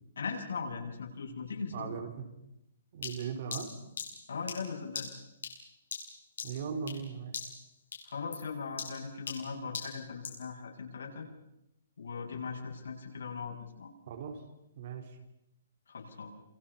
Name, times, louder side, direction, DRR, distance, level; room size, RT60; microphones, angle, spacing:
voice 1, 0.2-1.9 4.3-5.1 8.0-11.3 12.0-13.9 15.9-16.3, left 5 dB, 85° left, 1 dB, 7.9 m, -39 dB
voice 2, 1.7-2.3 2.9-3.7 6.4-7.3 14.1-14.4 14.8-15.2, right 6 dB, 40° right, 6 dB, 4.0 m, -38 dB
sound 1, 3.0-7.1 7.3-7.7 7.9-10.5, left 6 dB, 70° left, 7.8 m, -41 dB
29.0 x 28.0 x 5.8 m, 0.84 s
hypercardioid pair, 170°, 0 cm